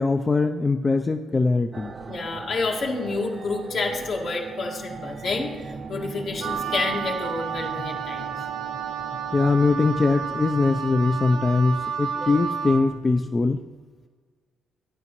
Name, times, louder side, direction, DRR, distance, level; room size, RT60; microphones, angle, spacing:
voice 1, 0.0-1.9 9.1-13.6, left 3 dB, 25° left, 5 dB, 0.4 m, -22 dB
sound 1, 1.7-9.7, right 5 dB, 40° right, 0.5 m, -37 dB
voice 2, 2.1-8.3 12.2-12.4, left 3 dB, 65° left, -1 dB, 1.9 m, -29 dB
Wind instrument woodwind instrument, 6.4-12.9, right 7 dB, 85° right, 1.1 m, -31 dB
12.0 x 9.9 x 3.1 m, 1.5 s
cardioid pair, 90°, 0 cm